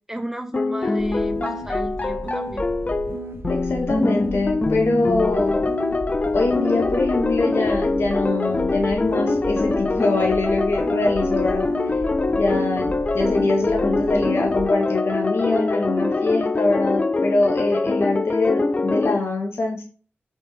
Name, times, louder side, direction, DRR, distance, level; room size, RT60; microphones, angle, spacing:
voice 1, 0.1-2.7, right 1 dB, 10° right, 4 dB, 1.6 m, -33 dB
sound 1, 0.5-19.2, left 3 dB, 35° left, 0.6 m, -23 dB
sound 2, 1.0-14.7, right 3 dB, 80° right, 1.4 m, -35 dB
voice 2, 3.5-5.7 6.3-12.0 12.3-19.8, left 2 dB, 80° left, 0 dB, 2.2 m, -24 dB
6.7 x 6.0 x 3.6 m, 0.38 s
wide cardioid pair, 75°, 4 cm